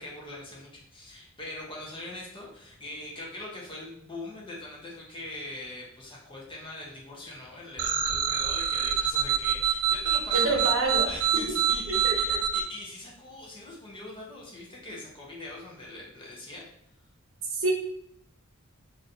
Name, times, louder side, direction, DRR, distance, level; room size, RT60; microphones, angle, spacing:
voice 1, 0.0-10.7 11.0-16.7, left 2 dB, 25° left, -4 dB, 0.9 m, -42 dB
sound 1, 7.8-12.6, right 8 dB, 90° right, 0.4 m, -26 dB
voice 2, 10.3-11.1 11.9-12.4 17.5-17.7, right 2 dB, 65° right, 1 dB, 0.8 m, -27 dB
3.9 x 2.7 x 2.7 m, 0.73 s
head